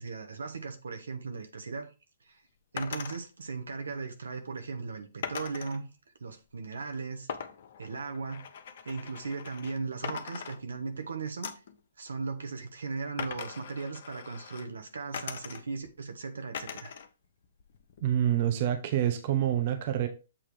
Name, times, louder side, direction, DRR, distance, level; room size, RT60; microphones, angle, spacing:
voice 1, 0.0-1.9 2.2-2.4 2.7-5.9 6.2-7.3 7.8-8.5 8.8-11.5 12.0-16.9, right 4 dB, 85° right, 1.3 m, -37 dB
sound 1, 2.8-3.2 5.2-5.8 7.3-9.8 10.0-11.0 11.4-11.8 13.2-14.7 15.1-15.9 16.5-17.1 17.4-18.2, left 7 dB, 55° left, 0.8 m, -41 dB
voice 2, 18.0-20.1, right 11 dB, 45° right, 0.9 m, -27 dB
7.6 x 2.9 x 4.9 m
hypercardioid pair, 140°, 0 cm